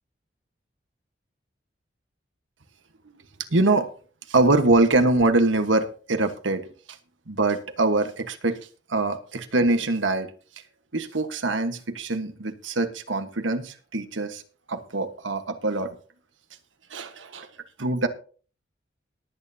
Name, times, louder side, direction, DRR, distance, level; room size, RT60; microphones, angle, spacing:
voice 1, 3.5-3.8 4.3-6.7 7.3-8.6 8.9-10.3 10.9-14.4 14.7-15.9 16.9-17.5 17.8-18.1, right 2 dB, 85° right, 1.3 m, -23 dB
19.5 x 9.0 x 2.8 m
head